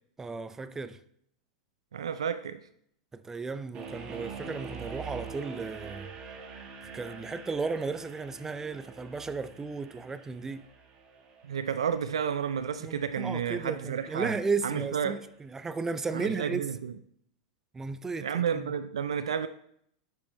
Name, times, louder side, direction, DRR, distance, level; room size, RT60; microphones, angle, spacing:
voice 1, 0.2-1.0 3.1-6.1 6.9-10.7 12.8-16.6 17.7-18.7, right 4 dB, 15° right, 0.5 m, -34 dB
voice 2, 1.9-2.6 11.4-14.3 14.6-15.2 16.1-16.9 18.2-19.5, right 7 dB, 85° right, 0.4 m, -31 dB
sound 1, 3.7-14.8, right 5 dB, 35° right, 1.5 m, -45 dB
10.0 x 6.4 x 3.3 m
hypercardioid pair, 100°, 3 cm